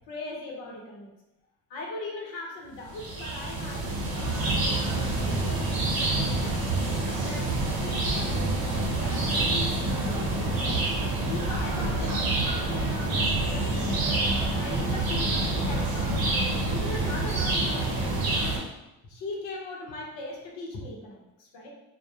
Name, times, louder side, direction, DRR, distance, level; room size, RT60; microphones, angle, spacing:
voice 1, 0.1-1.1 1.7-6.6 7.1-10.8 11.3-14.2 14.6-18.6 19.0-21.7, left 2 dB, 65° left, -1 dB, 0.8 m, -39 dB
sound 1, 2.9-18.6, right 2 dB, 50° right, 0.8 m, -27 dB
2.2 x 2.1 x 2.7 m, 0.92 s
hypercardioid pair, 55°, 47 cm